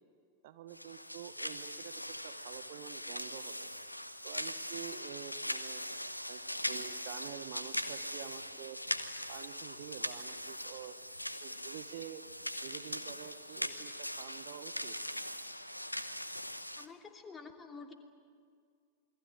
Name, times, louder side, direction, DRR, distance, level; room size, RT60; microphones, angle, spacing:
voice 1, 0.4-3.7 4.2-5.8 6.3-8.8 9.3-11.0 11.4-12.2 12.6-15.0, right 11 dB, 50° right, 10 dB, 1.1 m, -48 dB
sound 1, 0.7-16.9, equal, 90° left, 1.0 m, -41 dB
voice 2, 16.8-17.9, left 4 dB, 15° left, 3 dB, 2.9 m, -49 dB
28.0 x 21.5 x 8.9 m, 2.1 s
figure-of-eight pair, 90°, 0 cm